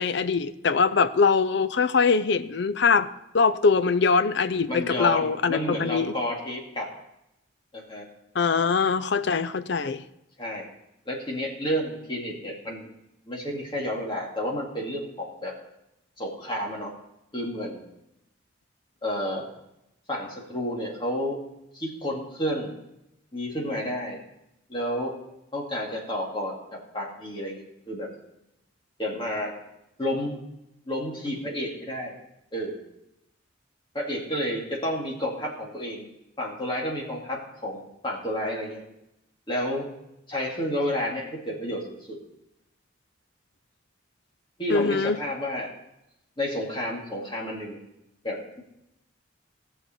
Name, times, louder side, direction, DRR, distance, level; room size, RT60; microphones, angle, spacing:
voice 1, 0.0-3.1 3.3-6.1 8.4-10.0 44.7-45.2, left 5 dB, 60° left, 12 dB, 0.5 m, -22 dB
voice 2, 4.7-6.9 7.7-8.0 10.4-10.7 11.1-12.9 13.3-15.6 16.2-16.9 17.3-17.9 19.0-19.5 20.1-21.4 21.7-22.7 23.3-24.2 24.7-25.1 25.5-28.1 29.0-29.5 30.0-30.4 30.9-32.2 32.5-32.8 33.9-36.1 36.4-38.8 39.5-39.9 40.3-42.2 44.6-45.7 46.4-47.8 48.2-48.6, equal, 25° left, -2 dB, 2.3 m, -31 dB
17.5 x 6.7 x 4.4 m, 0.86 s
head